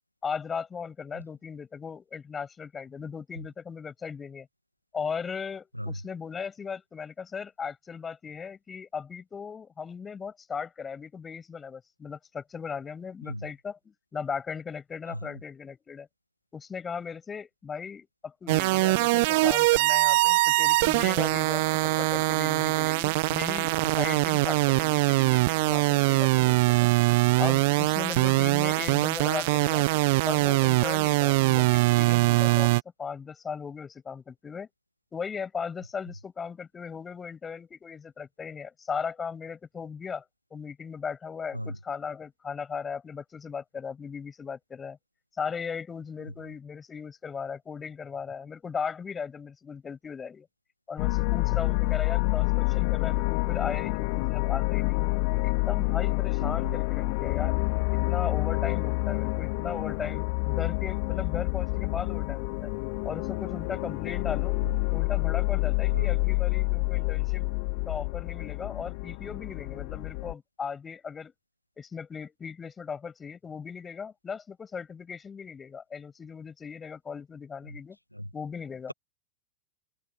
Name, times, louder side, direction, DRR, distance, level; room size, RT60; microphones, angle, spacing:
voice 1, 0.2-4.5 4.9-16.1 16.5-21.6 22.0-26.9 27.4-29.9 30.3-34.7 35.1-40.2 40.5-45.0 45.4-50.5 50.9-55.0 55.4-57.6 58.1-62.7 63.0-64.6 64.9-67.4 67.9-71.3 71.8-78.0 78.3-78.9, left 6 dB, 20° left, 6.9 m, -37 dB
voice 2, 5.8-5.9 13.3-13.4 15.1-15.2 41.5-41.7 65.9-66.1 78.2-78.3, equal, 90° left, 1.7 m, -34 dB
sound 1, 18.5-32.8, right 23 dB, 50° right, 1.9 m, -23 dB
sound 2, 51.0-70.3, left 35 dB, 45° left, 4.5 m, -28 dB
open air
figure-of-eight pair, 90°, 0 cm